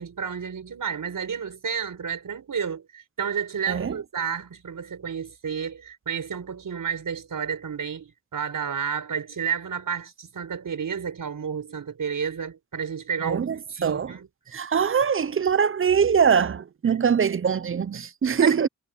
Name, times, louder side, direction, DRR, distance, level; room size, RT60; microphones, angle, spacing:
voice 1, 0.0-14.3 18.4-18.5, right 7 dB, 85° right, 4.7 m, -31 dB
voice 2, 13.2-14.1 14.5-18.7, right 7 dB, 40° right, 0.6 m, -23 dB
wide cardioid pair, 95°, 32 cm